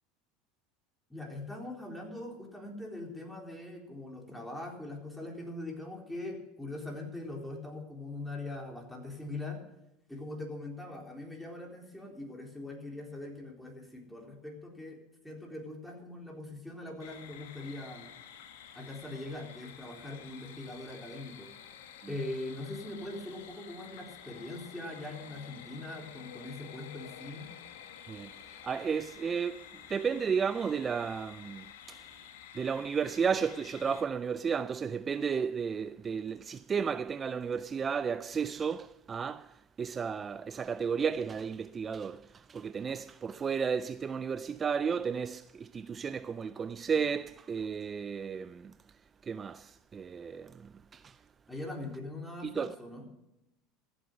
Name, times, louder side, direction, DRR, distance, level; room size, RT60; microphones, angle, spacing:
voice 1, 1.1-9.6 10.1-18.1 18.7-21.5 22.1-27.5 51.5-53.0, left 2 dB, 5° left, 3.9 m, -42 dB
sound 1, 17.0-34.0, left 9 dB, 85° left, 1.7 m, -50 dB
voice 2, 28.1-32.0 32.5-48.7 49.2-51.2 52.4-52.7, right 6 dB, 30° right, 0.4 m, -33 dB
14.5 x 8.0 x 8.0 m
supercardioid pair, 100°, 0 cm